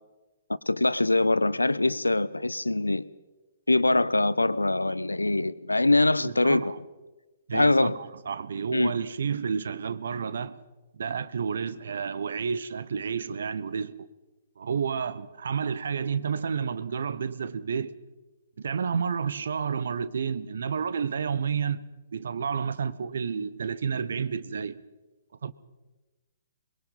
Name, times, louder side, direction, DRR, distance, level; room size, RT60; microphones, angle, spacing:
voice 1, 0.5-3.0 3.7-6.7 7.5-7.9 8.7-8.9, left 2 dB, 85° left, 0.8 m, -23 dB
voice 2, 6.2-6.8 7.5-10.6 10.9-14.1 14.6-17.9 18.6-21.9 22.1-24.8 25.4-25.5, right 6 dB, 60° right, 1.1 m, -30 dB
23.0 x 22.5 x 5.6 m
figure-of-eight pair, 120°, 0 cm